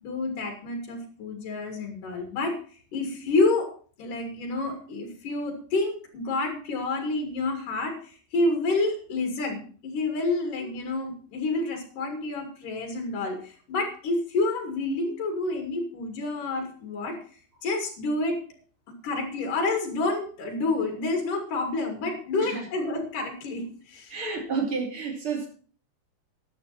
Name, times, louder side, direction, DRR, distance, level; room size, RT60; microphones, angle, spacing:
voice 1, 0.0-2.5 2.9-3.7 4.0-17.2 17.6-18.4 19.0-24.2, left 2 dB, 75° left, 4.2 m, -28 dB
voice 2, 24.1-25.5, right 5 dB, 40° right, 3.7 m, -30 dB
13.5 x 11.0 x 4.2 m
omnidirectional pair, 3.7 m